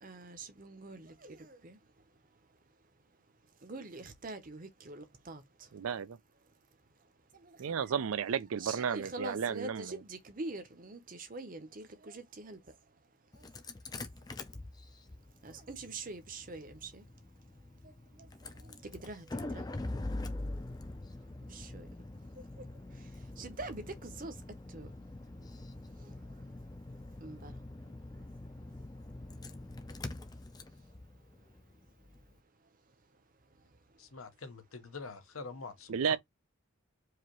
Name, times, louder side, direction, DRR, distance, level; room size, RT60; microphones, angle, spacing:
voice 1, 0.0-1.8 3.6-5.7 7.3-7.8 8.0-8.1 8.6-12.8 13.3-13.5 13.9-14.0 15.4-17.1 17.8-19.7 21.4-21.9 22.3-24.4 24.7-24.9 25.4-25.5 25.9-26.4 27.2-28.3, right 3 dB, 40° right, 0.8 m, -45 dB
voice 2, 5.7-6.2 7.6-10.0 35.9-36.2, right 7 dB, 80° right, 0.4 m, -33 dB
Engine starting, 13.3-32.3, left 2 dB, 20° left, 0.4 m, -44 dB
voice 3, 34.0-36.2, left 4 dB, 80° left, 1.0 m, -45 dB
4.8 x 2.8 x 3.0 m
head